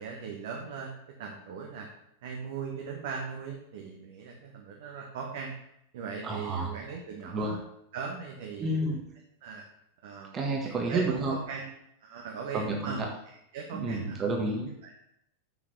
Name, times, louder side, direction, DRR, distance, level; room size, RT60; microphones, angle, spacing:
voice 1, 0.0-1.9 2.2-5.5 5.9-7.6 7.9-8.7 9.4-9.6 10.0-10.4 10.6-11.7 12.0-14.2 14.8-14.9, right 5 dB, 55° right, 1 dB, 1.3 m, -39 dB
voice 2, 6.2-6.7 7.3-7.5 8.6-9.0 10.3-11.4 12.5-13.1 13.7-14.7, right 2 dB, 25° right, 1 dB, 1.5 m, -30 dB
7.2 x 6.0 x 6.5 m, 0.78 s
figure-of-eight pair, 90°, 0 cm